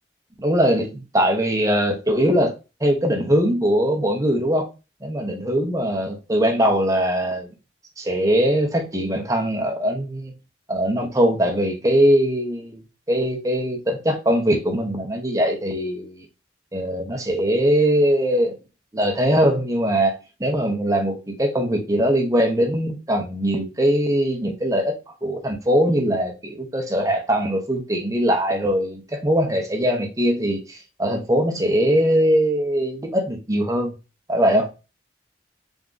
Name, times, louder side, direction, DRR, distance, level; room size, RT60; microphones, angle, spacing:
voice 1, 0.4-2.5 2.8-4.7 5.0-7.5 8.0-10.3 10.7-12.8 13.1-16.2 16.7-18.6 18.9-33.9 34.3-34.7, equal, 20° right, 0.8 m, -21 dB
3.5 x 2.9 x 3.7 m
head